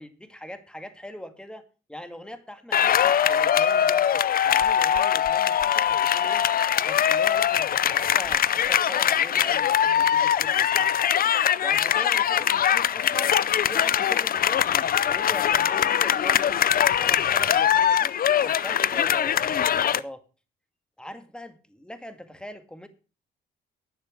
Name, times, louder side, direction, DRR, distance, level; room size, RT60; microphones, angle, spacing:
voice 1, 0.0-1.6 1.9-6.4 6.8-11.1 11.6-13.3 13.7-14.6 15.1-18.1 18.4-20.2 21.0-22.9, equal, 5° left, 9 dB, 2.0 m, -41 dB
sound 1, 2.7-20.0, left 9 dB, 45° left, 0.5 m, -22 dB
11.0 x 7.4 x 7.3 m, 0.35 s
cardioid pair, 90°, 20 cm